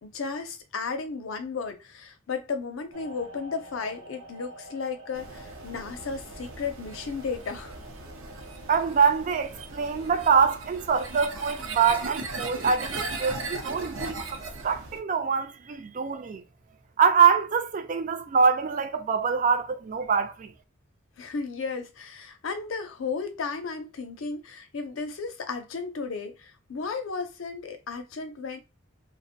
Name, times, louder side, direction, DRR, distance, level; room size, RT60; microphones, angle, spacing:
voice 1, 0.0-7.8 21.2-28.6, left 4 dB, 85° left, 0.5 m, -34 dB
sound 1, 2.9-14.2 14.6-15.0, right 1 dB, 70° right, 1.0 m, -50 dB
sound 2, 5.1-15.0, right 3 dB, 90° right, 0.6 m, -38 dB
voice 2, 8.7-14.4 14.6-16.4 17.0-20.5, right 6 dB, 40° right, 0.3 m, -24 dB
2.5 x 2.1 x 2.6 m
head